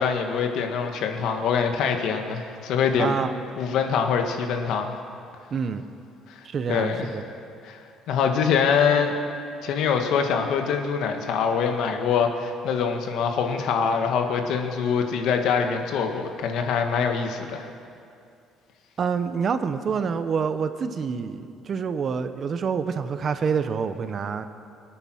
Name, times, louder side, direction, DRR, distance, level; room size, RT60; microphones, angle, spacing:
voice 1, 0.0-3.2 3.6-4.9 6.7-7.1 7.6-7.8 8.1-9.1 9.6-17.6, left 6 dB, 65° left, 4 dB, 1.5 m, -24 dB
voice 2, 3.0-3.4 5.5-5.8 6.4-7.2 19.0-24.5, right 6 dB, 35° right, 11 dB, 0.7 m, -27 dB
24.5 x 9.1 x 6.3 m, 2.5 s
cardioid pair, 155°, 0 cm